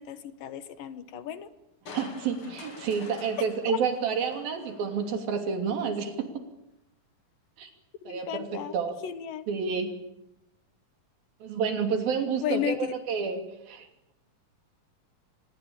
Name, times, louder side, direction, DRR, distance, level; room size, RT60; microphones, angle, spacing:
voice 1, 0.0-1.5 3.7-3.8 8.0-8.8 9.0-9.5 12.4-12.9, left 10 dB, 75° left, 13 dB, 3.0 m, -34 dB
Crushing, 1.9-5.2 5.7-5.8, left 3 dB, 40° left, 3.3 m, -47 dB
voice 2, 1.9-6.3 7.6-7.7 8.1-8.5 8.7-8.9 9.5-9.9 11.4-13.4 13.7-13.9, right 6 dB, 85° right, 6 dB, 4.7 m, -29 dB
25.5 x 20.5 x 8.8 m, 0.84 s
omnidirectional pair, 4.1 m